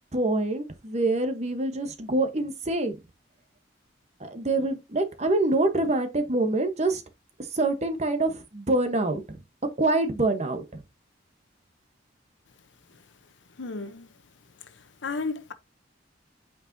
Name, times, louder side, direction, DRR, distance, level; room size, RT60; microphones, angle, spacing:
voice 1, 0.1-3.0 4.2-7.0 7.5-9.4 9.8-10.8, right 2 dB, 35° right, 1.0 m, -25 dB
voice 2, 13.6-14.1 15.0-15.5, left 4 dB, 80° left, 0.8 m, -32 dB
8.6 x 4.7 x 2.7 m
head